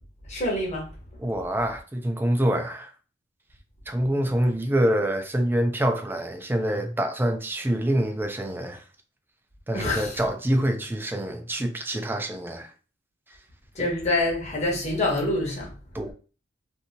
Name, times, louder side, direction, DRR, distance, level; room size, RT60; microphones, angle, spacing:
voice 1, 0.3-0.9 9.7-10.2 13.7-15.7, left 2 dB, 35° left, 1.0 m, -26 dB
voice 2, 1.2-2.9 3.9-8.8 9.7-12.7 15.9-16.1, right 1 dB, 10° right, 0.4 m, -26 dB
2.6 x 2.6 x 2.7 m
head